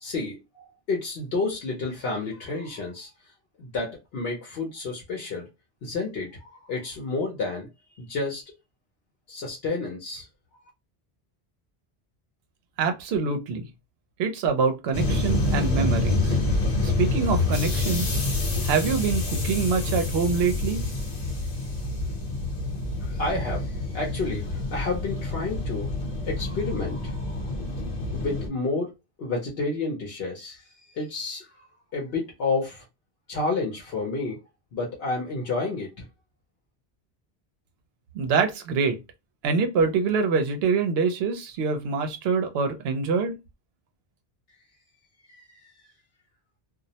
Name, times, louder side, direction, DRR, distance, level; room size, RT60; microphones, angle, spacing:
voice 1, 0.0-3.1 3.6-5.5 5.8-7.7 7.9-8.4 9.3-10.3 23.0-25.9 26.3-27.5 28.1-28.9 29.2-31.6 31.9-32.9 33.3-34.4 34.7-36.1 45.3-45.6, left 3 dB, 70° left, 0.9 m, -30 dB
voice 2, 12.8-13.7 14.2-16.4 16.8-18.2 18.6-20.8 38.1-39.0 39.4-43.4, right 5 dB, 75° right, 0.8 m, -25 dB
sound 1, 14.9-28.5, left 2 dB, 45° left, 0.8 m, -27 dB
2.3 x 2.0 x 2.7 m
omnidirectional pair, 1.1 m